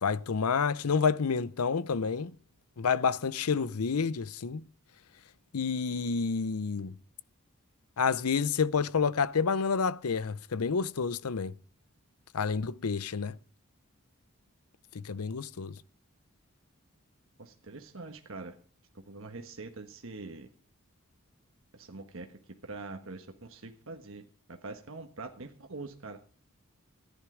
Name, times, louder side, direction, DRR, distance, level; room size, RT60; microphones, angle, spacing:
voice 1, 0.0-2.3 2.8-4.6 5.5-7.0 8.0-11.5 12.3-13.4 15.0-15.7, left 5 dB, 85° left, 0.6 m, -29 dB
voice 2, 17.4-18.6 19.1-20.5 21.7-22.3 22.7-24.2 24.6-26.2, right 3 dB, 65° right, 1.3 m, -43 dB
14.5 x 10.0 x 4.9 m
head